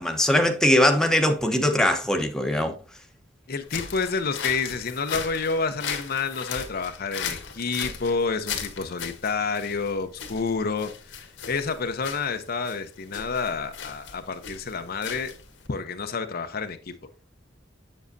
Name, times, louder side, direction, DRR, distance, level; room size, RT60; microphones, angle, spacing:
voice 1, 0.0-2.7, left 1 dB, 5° left, 0.9 m, -21 dB
voice 2, 3.5-15.3 15.7-16.9, left 4 dB, 55° left, 0.7 m, -29 dB
sound 1, 3.6-15.7, left 7 dB, 80° left, 1.5 m, -37 dB
7.8 x 7.3 x 2.7 m
head